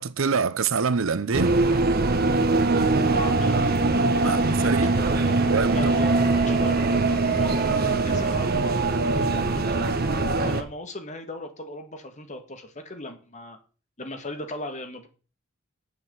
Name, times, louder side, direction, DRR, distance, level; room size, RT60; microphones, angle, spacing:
voice 1, 0.0-1.6 4.2-5.1 5.5-5.8, right 5 dB, 70° right, 0.7 m, -25 dB
sound 1, 1.3-10.6, right 3 dB, 45° right, 1.2 m, -22 dB
voice 2, 3.1-3.7 4.2-9.9 10.4-13.6 14.0-15.1, left 1 dB, 35° left, 1.8 m, -38 dB
8.0 x 7.0 x 7.1 m
head